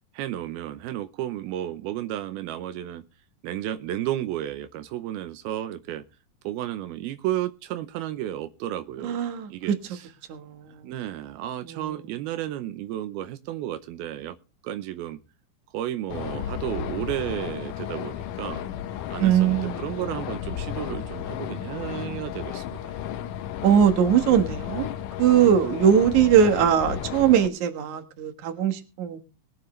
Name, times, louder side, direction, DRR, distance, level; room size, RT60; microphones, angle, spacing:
voice 1, 0.1-3.0 3.4-6.0 6.4-9.2 9.5-10.1 10.8-14.4 14.6-15.2 15.7-18.6 19.1-22.9, right 13 dB, 85° right, 2.7 m, -32 dB
voice 2, 9.0-9.5 10.3-10.7 11.7-12.0 19.2-19.8 23.6-24.9 25.2-29.2, right 8 dB, 60° right, 2.7 m, -20 dB
sound 1, 16.1-27.5, left 10 dB, 70° left, 2.1 m, -33 dB
21.0 x 9.4 x 3.2 m
omnidirectional pair, 4.3 m